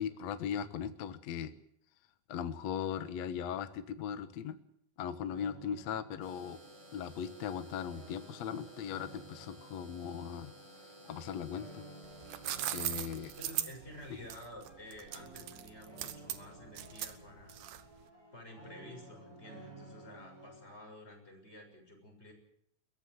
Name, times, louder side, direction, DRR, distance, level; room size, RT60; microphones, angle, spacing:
voice 1, 0.0-1.5 2.3-4.6 5.0-6.6 6.9-10.5 10.8-11.8 12.7-13.3, left 8 dB, 60° left, 11 dB, 2.0 m, -38 dB
sound 1, 5.3-20.7, right 2 dB, 45° right, 8.7 m, -55 dB
sound 2, 6.2-13.4, right 1 dB, 20° right, 6.5 m, -56 dB
sound 3, 12.0-18.0, right 13 dB, 80° right, 3.1 m, -39 dB
voice 2, 13.4-17.6 18.3-22.3, left 1 dB, 15° left, 2 dB, 6.9 m, -51 dB
22.5 x 18.5 x 8.0 m, 0.71 s
omnidirectional pair, 4.4 m